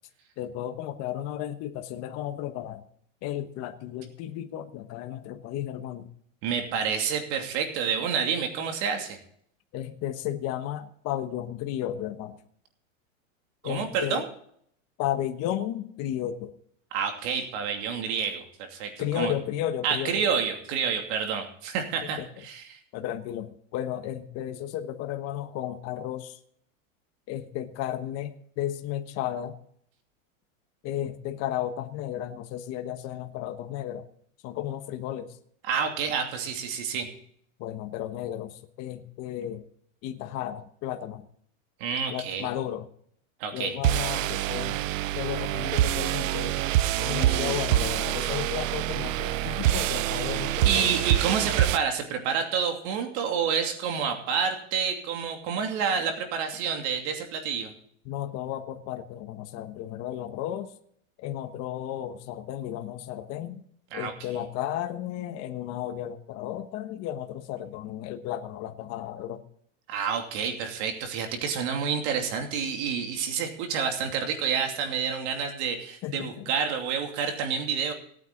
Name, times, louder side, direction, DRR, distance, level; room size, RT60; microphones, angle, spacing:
voice 1, 0.4-2.8 3.2-6.1 9.7-12.4 13.6-14.2 15.0-16.5 19.0-20.2 22.0-22.3 22.9-26.4 27.3-29.5 30.8-34.0 34.4-35.4 37.6-39.6 40.0-41.3 42.1-42.9 43.5-44.8 45.1-46.5 47.0-51.0 58.0-60.7 61.2-63.6 63.9-69.4 76.0-76.5, left 11 dB, 40° left, 6 dB, 1.3 m, -33 dB
voice 2, 6.4-9.2 13.6-14.2 16.9-19.3 19.8-22.8 35.6-37.1 41.8-42.5 43.4-43.7 47.1-47.5 50.6-57.7 63.9-64.4 69.9-77.9, right 6 dB, 55° right, 4 dB, 2.7 m, -29 dB
sound 1, 43.8-51.8, right 14 dB, 75° right, 0.7 m, -26 dB
18.5 x 9.2 x 3.9 m, 0.65 s
supercardioid pair, 145°, 40 cm